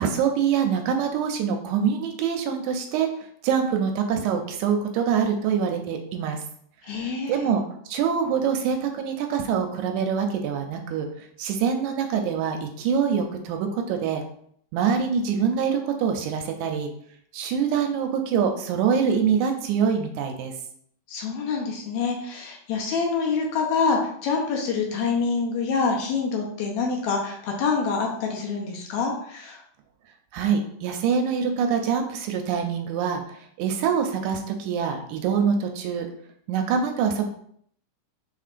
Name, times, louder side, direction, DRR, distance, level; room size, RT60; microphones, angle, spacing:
voice 1, 0.0-3.1 3.4-6.4 6.9-14.2 14.7-16.9 17.3-20.5 30.3-33.2 33.6-36.1 36.5-37.3, right 7 dB, 80° right, 4 dB, 1.9 m, -25 dB
voice 2, 6.9-7.5 21.1-29.6, left 5 dB, 75° left, 0 dB, 2.0 m, -26 dB
5.3 x 3.7 x 2.5 m, 0.66 s
omnidirectional pair, 3.5 m